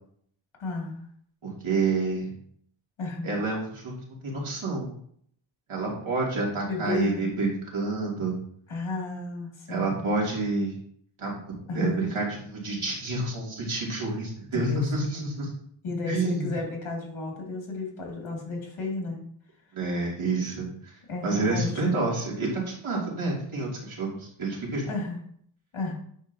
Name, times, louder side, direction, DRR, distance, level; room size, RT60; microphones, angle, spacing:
voice 1, 0.6-1.1 3.0-3.3 6.6-7.3 8.7-10.0 11.7-12.0 14.5-15.4 15.8-19.2 21.1-21.9 24.9-25.2 25.7-25.9, left 3 dB, 80° left, -1 dB, 2.3 m, -33 dB
voice 2, 1.4-2.3 3.2-3.9 4.2-4.9 5.7-8.4 9.7-10.7 11.2-15.5 16.1-16.5 19.7-20.9 21.2-24.9, right 3 dB, 75° right, -3 dB, 2.6 m, -29 dB
9.0 x 5.3 x 2.7 m, 0.64 s
wide cardioid pair, 95°, 48 cm